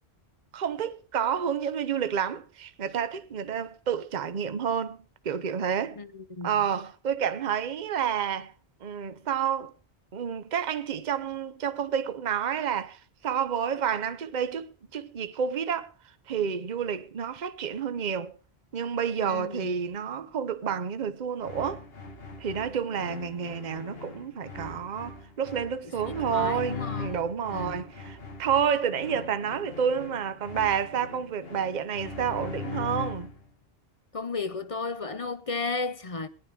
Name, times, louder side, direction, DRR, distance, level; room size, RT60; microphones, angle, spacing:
voice 1, 0.5-5.0 5.2-6.0 6.4-8.5 8.8-9.7 10.1-15.9 16.3-18.3 18.7-21.8 22.4-33.3, right 8 dB, 50° right, 0.9 m, -29 dB
voice 2, 6.0-6.6 19.2-19.7 26.0-27.1 27.5-27.8 34.1-36.3, left 4 dB, 40° left, 0.7 m, -34 dB
sound 1, 21.4-33.5, left 4 dB, 70° left, 1.6 m, -40 dB
18.5 x 11.0 x 3.4 m
omnidirectional pair, 1.0 m